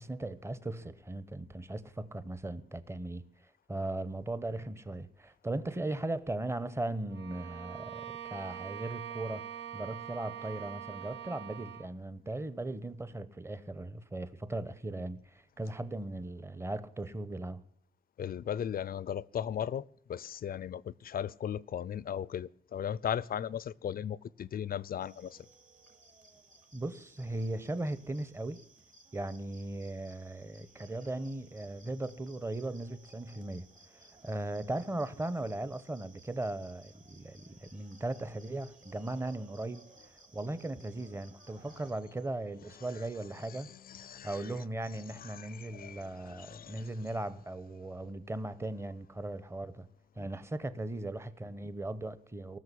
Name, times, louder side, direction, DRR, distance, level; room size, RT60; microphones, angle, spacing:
voice 1, 0.0-3.2 3.7-17.6 26.7-28.6 29.1-33.7 33.9-43.7 44.0-49.9 50.2-52.6, right 2 dB, 15° right, 0.9 m, -38 dB
Bowed string instrument, 7.1-12.0, right 9 dB, 80° right, 1.3 m, -43 dB
voice 2, 18.2-25.4 43.0-43.1 43.5-44.5 45.2-46.9, left 9 dB, 55° left, 0.5 m, -37 dB
sound 1, 25.0-41.9, right 3 dB, 45° right, 2.4 m, -59 dB
19.0 x 6.7 x 9.9 m
wide cardioid pair, 140°, 18 cm